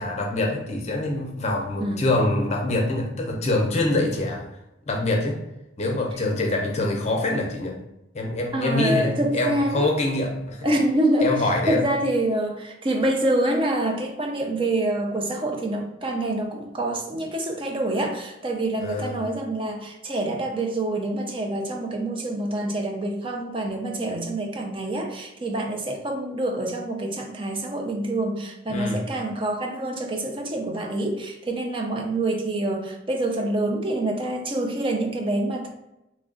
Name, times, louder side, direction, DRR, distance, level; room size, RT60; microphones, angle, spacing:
voice 1, 0.0-4.5 4.9-5.4 5.8-7.8 8.1-10.7 11.2-11.8 18.8-19.2 28.7-29.1, left 2 dB, 35° left, 1 dB, 0.6 m, -25 dB
voice 2, 8.5-9.9 10.6-11.3 11.7-35.7, right 1 dB, 30° right, 2 dB, 0.5 m, -26 dB
3.1 x 2.4 x 3.7 m, 0.91 s
head